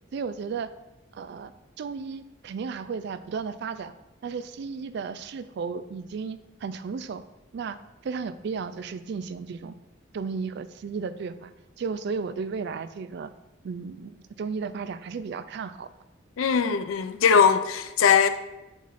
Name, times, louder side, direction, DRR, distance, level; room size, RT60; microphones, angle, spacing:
voice 1, 0.1-0.7 1.1-1.5 1.8-3.9 4.2-7.2 7.5-7.8 8.0-9.7 10.1-11.5 11.8-13.3 13.6-15.9, right 5 dB, 55° right, 0.3 m, -34 dB
voice 2, 16.4-18.3, left 6 dB, 85° left, 0.4 m, -20 dB
7.1 x 2.5 x 5.6 m
head